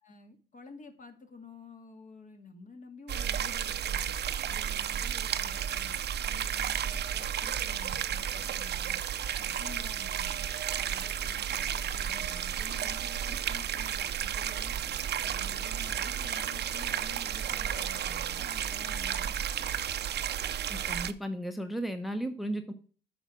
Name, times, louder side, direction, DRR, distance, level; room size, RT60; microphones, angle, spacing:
voice 1, 0.0-4.1 4.4-6.0 6.2-9.0 9.4-10.5 10.8-14.7 15.3-19.4, left 4 dB, 40° left, 2.0 m, -50 dB
sound 1, 3.1-21.1, right 9 dB, 55° right, 0.7 m, -33 dB
voice 2, 20.7-22.7, right 1 dB, ahead, 0.9 m, -35 dB
8.9 x 5.1 x 6.1 m
cardioid pair, 90°, 20 cm